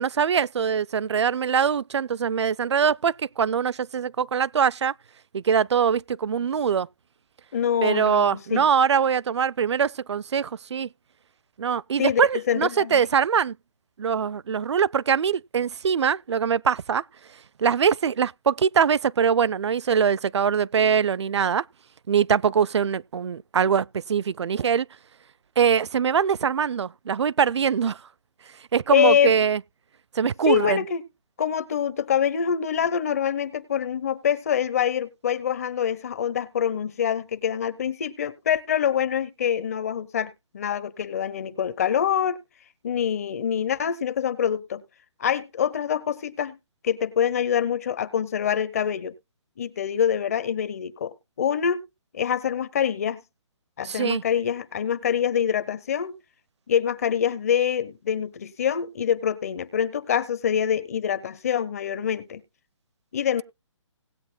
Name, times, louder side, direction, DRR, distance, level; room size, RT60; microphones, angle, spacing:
voice 1, 0.0-4.9 5.3-6.9 7.8-10.9 11.6-13.6 14.0-17.0 17.6-21.6 22.1-24.9 25.6-28.0 28.7-29.6 30.2-30.8 53.8-54.2, right 7 dB, 60° right, 0.5 m, -23 dB
voice 2, 7.5-8.6 12.0-12.2 12.5-13.0 28.9-29.3 30.5-31.0 31.4-42.4 42.8-44.8 45.2-46.6 46.8-49.1 49.6-51.8 52.1-53.2 53.8-56.1 56.7-62.4 63.1-63.4, left 8 dB, 30° left, 0.8 m, -25 dB
19.0 x 8.6 x 2.2 m
hypercardioid pair, 170°, 16 cm